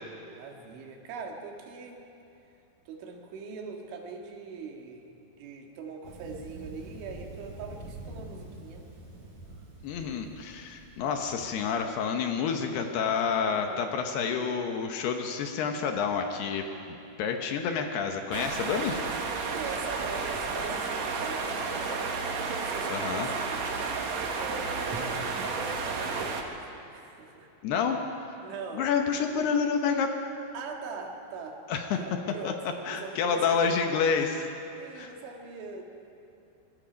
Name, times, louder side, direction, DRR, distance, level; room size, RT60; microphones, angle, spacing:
voice 1, 0.3-2.1 2.9-8.9 13.7-14.0 19.5-22.2 22.6-23.7 24.0-27.5 28.4-28.9 30.5-31.6 32.0-33.7 34.8-35.8, right 5 dB, 80° right, 2 dB, 4.3 m, -42 dB
Thunder, 6.0-11.9, right 2 dB, 40° right, 5.1 m, -46 dB
voice 2, 9.8-19.0 22.9-23.3 27.6-28.0 28.8-30.1 31.7-32.0 32.4-32.5 32.9-34.5 35.0-35.1, left 6 dB, 70° left, 4 dB, 2.8 m, -29 dB
sound 1, 18.3-26.4, right 4 dB, 65° right, 1.7 m, -32 dB
25.0 x 21.5 x 5.2 m, 2.8 s
omnidirectional pair, 5.4 m